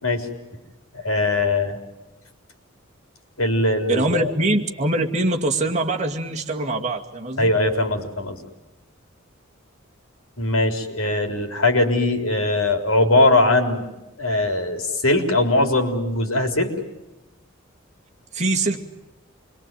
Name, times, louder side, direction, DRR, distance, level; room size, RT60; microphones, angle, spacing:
voice 1, 0.9-1.8 3.4-4.3 7.4-8.4 10.4-13.9 14.2-16.7, left 2 dB, 85° left, 6 dB, 4.0 m, -20 dB
voice 2, 3.9-7.5 18.3-18.8, right 2 dB, 35° right, 2 dB, 2.4 m, -23 dB
28.0 x 22.5 x 9.2 m, 0.97 s
head